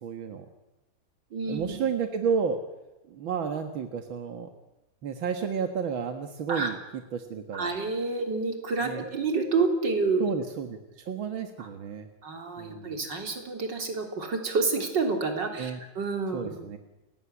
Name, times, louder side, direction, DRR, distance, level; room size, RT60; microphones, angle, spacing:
voice 1, 0.0-0.5 1.5-2.6 3.1-4.5 5.0-6.8 7.1-7.7 8.8-9.0 10.2-12.1 12.6-13.0 15.6-15.8 16.3-16.8, right 6 dB, 90° right, 6 dB, 2.3 m, -31 dB
voice 2, 1.3-1.8 6.5-6.7 7.5-10.2 11.6-11.7 12.2-15.7 16.0-16.5, right 4 dB, 65° right, 4 dB, 4.2 m, -28 dB
30.0 x 17.5 x 9.8 m, 1.0 s
omnidirectional pair, 2.1 m